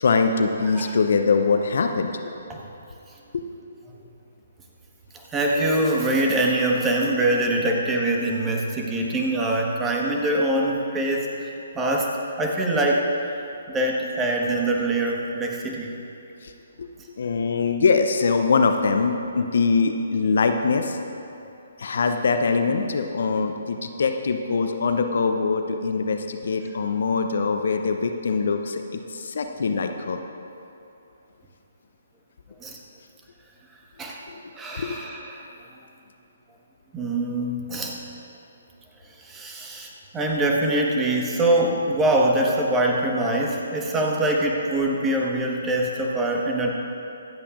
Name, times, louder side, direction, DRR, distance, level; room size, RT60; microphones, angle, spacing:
voice 1, 0.0-2.1 3.3-3.5 16.4-16.5 16.8-16.9 17.2-21.0 21.8-30.2 34.3-34.4 34.7-35.0, left 4 dB, 60° left, 6 dB, 0.7 m, -23 dB
voice 2, 5.3-12.1 12.4-13.4 13.7-15.9 32.6-32.8 34.0-34.2 34.5-35.4 36.9-38.0 39.2-46.7, right 1 dB, 15° right, -1 dB, 1.4 m, -24 dB
25.0 x 8.4 x 2.5 m, 2.8 s
figure-of-eight pair, 135°, 0 cm